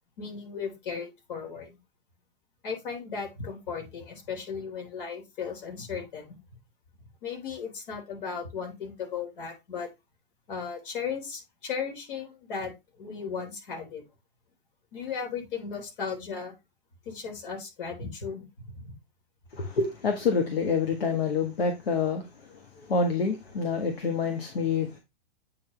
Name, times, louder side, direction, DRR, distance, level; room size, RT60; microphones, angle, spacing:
voice 1, 0.2-1.8 2.6-6.4 7.2-9.9 10.5-14.0 14.9-16.5 17.1-18.9, left 6 dB, 60° left, 3.6 m, -36 dB
voice 2, 19.5-25.0, left 5 dB, 80° left, 1.5 m, -27 dB
8.4 x 4.1 x 3.1 m
hypercardioid pair, 115°, 30 cm